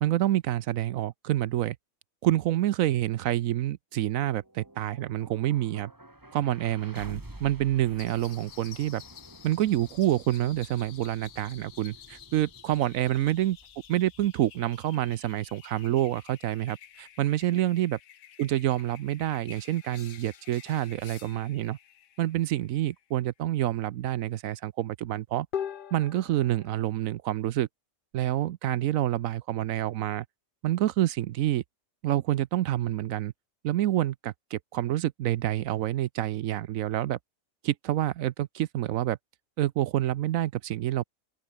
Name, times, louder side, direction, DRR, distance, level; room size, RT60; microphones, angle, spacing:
voice 1, 0.0-1.8 2.2-5.9 6.3-9.0 9.4-13.6 13.9-18.0 18.4-21.8 22.2-25.5 25.9-27.7 28.1-30.2 30.6-31.6 32.0-33.3 33.6-37.2 37.6-39.2 39.6-41.0, right 13 dB, 75° right, 1.0 m, -27 dB
sound 1, 4.2-16.0, right 1 dB, 15° right, 2.4 m, -51 dB
sound 2, 8.0-23.2, left 10 dB, 80° left, 1.3 m, -52 dB
sound 3, 19.5-21.5 25.5-26.9, left 8 dB, 50° left, 0.7 m, -40 dB
open air
omnidirectional pair, 1.4 m